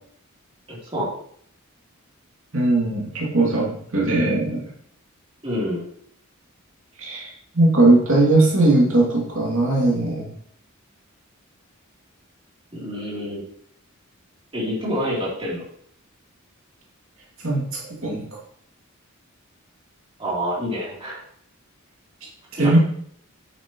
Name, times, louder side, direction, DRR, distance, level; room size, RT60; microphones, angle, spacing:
voice 1, 0.7-1.1 5.4-5.8 12.7-13.4 14.5-15.6 20.2-21.2 22.6-22.8, equal, 25° right, -6 dB, 3.5 m, -27 dB
voice 2, 2.5-4.7 7.0-10.2 17.4-17.6 18.0-18.2 22.5-22.8, right 2 dB, 65° right, -4 dB, 2.8 m, -19 dB
9.1 x 8.7 x 3.2 m, 0.64 s
head